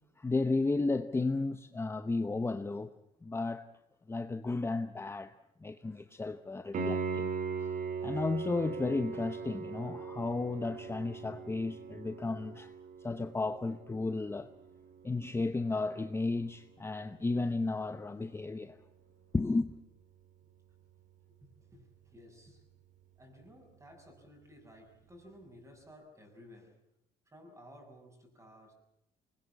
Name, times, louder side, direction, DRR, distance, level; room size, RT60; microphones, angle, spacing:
voice 1, 0.2-2.9 3.2-3.7 4.1-5.3 5.6-7.3 7.6-7.7 8.0-12.7 13.0-14.5 15.0-18.8 19.3-19.7, left 3 dB, 15° left, 0.9 m, -33 dB
Piano, 6.7-17.4 20.7-20.8, right 5 dB, 50° right, 2.9 m, -40 dB
voice 2, 21.6-22.6 23.2-26.8 27.3-28.7, equal, 20° right, 7.2 m, -55 dB
23.0 x 20.5 x 8.5 m
cardioid pair, 110°, 17 cm